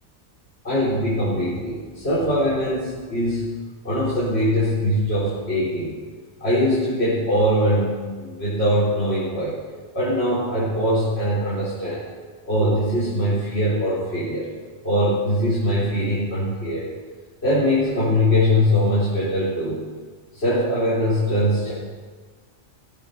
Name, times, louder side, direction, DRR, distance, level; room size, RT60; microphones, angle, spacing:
voice 1, 0.6-3.5 3.8-5.9 6.4-9.5 9.9-12.0 12.5-14.5 14.8-16.9 17.4-19.8 20.3-21.7, equal, 60° left, -11 dB, 4.6 m, -22 dB
17.5 x 9.0 x 6.8 m, 1.5 s
omnidirectional pair, 1.2 m